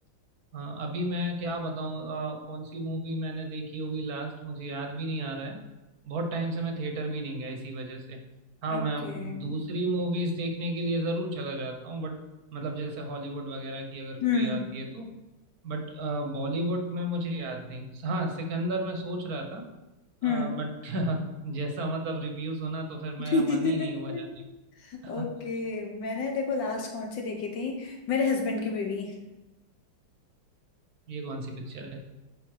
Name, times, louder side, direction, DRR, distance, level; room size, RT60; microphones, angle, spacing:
voice 1, 0.5-5.6 6.0-8.2 8.6-12.2 12.5-15.1 15.6-19.6 20.2-24.4 25.0-25.3 31.1-32.0, right 1 dB, 55° right, 4 dB, 1.2 m, -33 dB
voice 2, 8.7-9.5 14.2-14.6 20.2-20.6 23.2-24.2 24.9-29.1, left 4 dB, 65° left, 2 dB, 1.5 m, -29 dB
7.1 x 4.9 x 4.8 m, 1.0 s
omnidirectional pair, 2.3 m